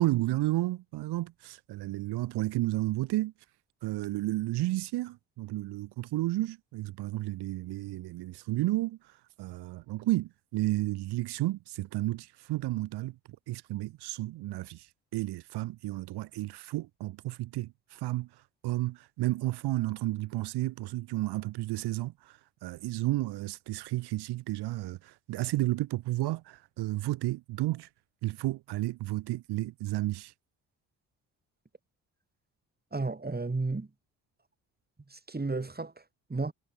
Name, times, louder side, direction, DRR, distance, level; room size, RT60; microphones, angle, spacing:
voice 1, 0.0-3.3 3.8-13.2 13.5-27.9 28.2-30.3, right 17 dB, 75° right, 1.7 m, -32 dB
voice 2, 32.9-33.9 35.1-35.9 36.3-36.5, right 3 dB, 25° right, 5.3 m, -32 dB
supercardioid pair, 55°, 40 cm